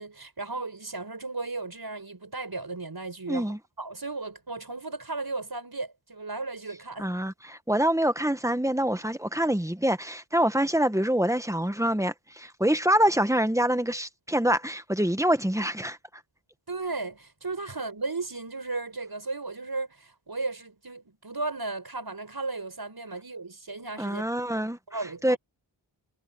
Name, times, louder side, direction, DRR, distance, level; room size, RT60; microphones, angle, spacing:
voice 1, 0.0-7.1 16.7-24.2 24.9-25.4, right 3 dB, 50° right, 6.4 m, -35 dB
voice 2, 3.3-3.6 7.0-16.0 24.0-24.8 25.2-25.4, right 1 dB, 5° right, 1.4 m, -25 dB
wide cardioid pair, 60°, 47 cm